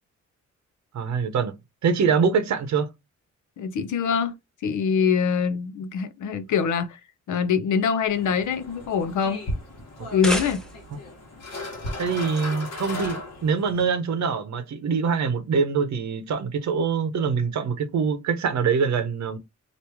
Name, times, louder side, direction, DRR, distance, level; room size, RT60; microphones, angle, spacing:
voice 1, 0.9-1.5 1.8-2.9 10.0-10.1 12.0-19.4, right 5 dB, 70° right, 0.7 m, -24 dB
voice 2, 3.6-4.3 4.6-7.0 7.3-9.4 10.1-10.6, left 6 dB, 80° left, 0.6 m, -24 dB
sound 1, 8.1-13.9, left 1 dB, 60° left, 1.2 m, -36 dB
sound 2, 9.9-11.1, equal, ahead, 0.7 m, -31 dB
3.0 x 2.5 x 3.4 m
wide cardioid pair, 120°, 29 cm